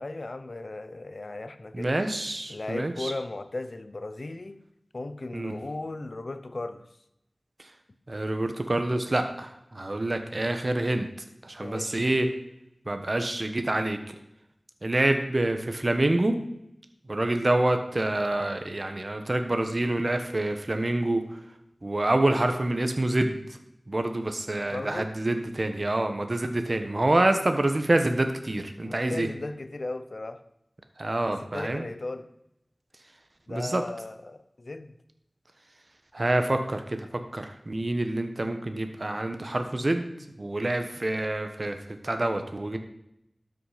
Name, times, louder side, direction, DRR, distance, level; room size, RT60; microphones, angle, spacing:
voice 1, 0.0-2.0 2.5-4.6 4.9-6.9 11.6-12.0 24.7-25.1 28.8-30.4 31.2-32.3 33.5-34.9, left 2 dB, 70° left, 11 dB, 0.8 m, -36 dB
voice 2, 1.7-3.1 5.3-5.5 8.1-11.1 11.4-12.3 12.9-14.0 14.8-16.5 17.1-21.2 21.8-23.4 23.9-29.3 31.0-31.8 33.5-33.8 36.1-40.0 40.4-41.8 42.0-42.8, right 1 dB, 50° right, 7 dB, 1.2 m, -27 dB
13.0 x 5.9 x 5.1 m, 0.80 s
wide cardioid pair, 50°, 0 cm